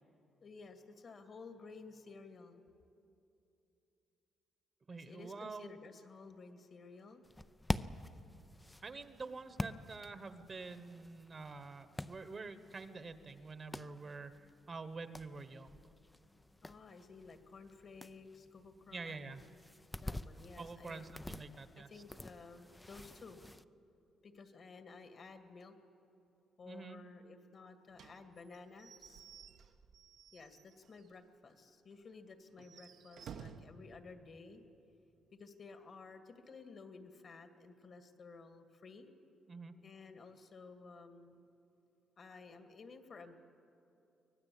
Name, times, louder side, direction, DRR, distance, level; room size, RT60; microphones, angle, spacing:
voice 1, 0.4-2.6 4.9-7.2 16.6-19.3 20.0-21.1 21.8-23.4 24.2-25.7 26.6-29.2 30.3-34.6 35.3-39.1 39.8-41.5 42.2-43.4, left 4 dB, 50° left, 7 dB, 2.1 m, -54 dB
voice 2, 4.9-5.8 8.8-15.8 18.9-19.4 20.6-22.0 26.6-27.0 39.5-39.7, right 4 dB, 35° right, 11 dB, 1.2 m, -47 dB
sound 1, 7.2-23.6, left 1 dB, 10° left, 0.6 m, -47 dB
Slam / Squeak / Wood, 27.9-31.2 31.5-31.6 31.9-32.0 32.5-33.8, right 7 dB, 70° right, 1.0 m, -54 dB
24.0 x 18.0 x 8.6 m, 2.8 s
cardioid pair, 90°, 0 cm